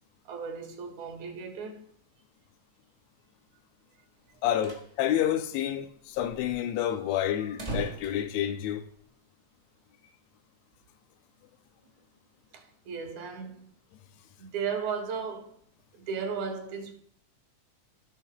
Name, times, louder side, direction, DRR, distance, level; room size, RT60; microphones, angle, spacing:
voice 1, 0.3-1.9 12.5-13.7 14.4-15.6 15.9-16.9, right 6 dB, 70° right, 2.4 m, -35 dB
sound 1, 4.3-4.9 5.2-5.3 5.5-5.6 6.1-9.1, right 3 dB, 20° right, 0.9 m, -40 dB
voice 2, 4.4-8.8, left 11 dB, 80° left, 1.5 m, -29 dB
16.5 x 5.8 x 2.2 m
omnidirectional pair, 3.6 m